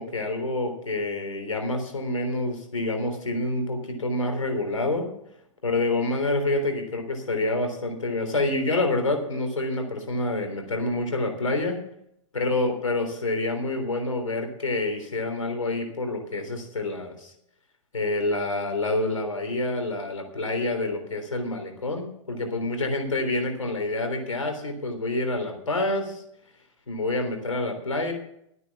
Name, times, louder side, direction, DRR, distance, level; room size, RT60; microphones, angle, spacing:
voice 1, 0.0-5.1 5.6-11.8 12.3-17.3 17.9-26.2 26.9-28.1, left 2 dB, 90° left, 5 dB, 3.5 m, -27 dB
13.5 x 9.6 x 6.0 m, 0.75 s
hypercardioid pair, 115°, 16 cm